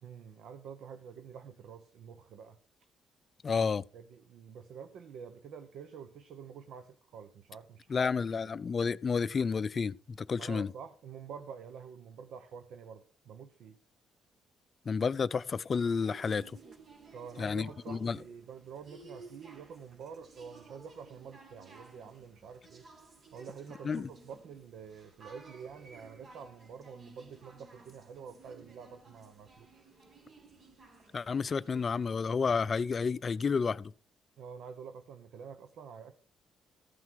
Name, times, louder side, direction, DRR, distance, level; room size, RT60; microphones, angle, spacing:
voice 1, 0.0-2.6 3.9-8.0 8.3-8.5 10.4-13.8 17.1-22.9 23.3-29.8 34.4-36.1, right 6 dB, 75° right, 0.9 m, -48 dB
voice 2, 3.4-3.8 7.9-10.7 14.9-16.4 17.4-18.2 23.8-24.1 31.1-33.9, left 5 dB, 40° left, 0.4 m, -30 dB
sound 1, 15.7-32.6, right 3 dB, 50° right, 2.3 m, -56 dB
14.0 x 6.0 x 4.6 m
cardioid pair, 90°, 0 cm